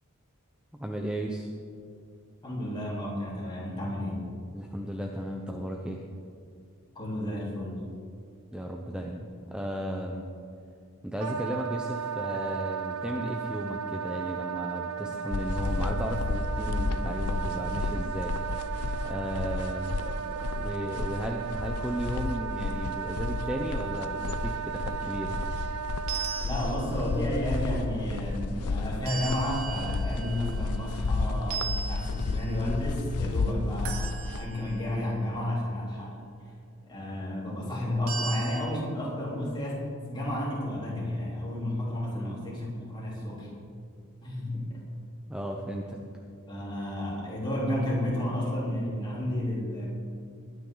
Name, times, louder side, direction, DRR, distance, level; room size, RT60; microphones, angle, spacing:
voice 1, 0.8-1.5 4.5-6.0 8.5-10.3 11.0-18.4 19.0-20.1 20.5-25.4 42.1-42.4 45.3-46.0, equal, 5° right, 1 dB, 0.8 m, -34 dB
voice 2, 2.4-4.2 6.9-7.8 26.4-36.1 36.9-43.5 44.2-44.8 46.5-49.9, left 1 dB, 20° left, -6 dB, 3.8 m, -32 dB
Wind instrument woodwind instrument, 11.2-26.5, right 7 dB, 90° right, 0.5 m, -35 dB
sound 1, 15.3-34.4, left 3 dB, 80° left, 0.6 m, -32 dB
sound 2, 26.1-27.2 29.1-31.1 31.5-32.7 33.9-34.9 38.1-38.6, right 6 dB, 70° right, 1.8 m, -38 dB
21.0 x 9.4 x 4.0 m, 2.4 s
head